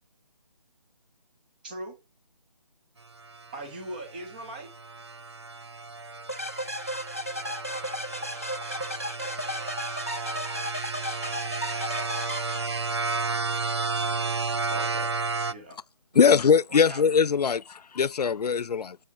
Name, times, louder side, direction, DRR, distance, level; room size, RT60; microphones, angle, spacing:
voice 1, 1.6-2.0 3.5-4.7 14.7-15.2 15.5-15.8 16.1-16.3 16.7-17.0, right 2 dB, 15° right, 1.4 m, -39 dB
sound 1, 3.2-15.5, right 3 dB, 45° right, 0.6 m, -32 dB
sound 2, 6.3-13.2, equal, 25° left, 0.4 m, -34 dB
voice 2, 8.4-8.5, right 1 dB, 80° right, 2.5 m, -58 dB
voice 3, 16.1-19.0, left 6 dB, 80° left, 0.4 m, -21 dB
7.5 x 5.8 x 5.5 m
figure-of-eight pair, 175°, 20 cm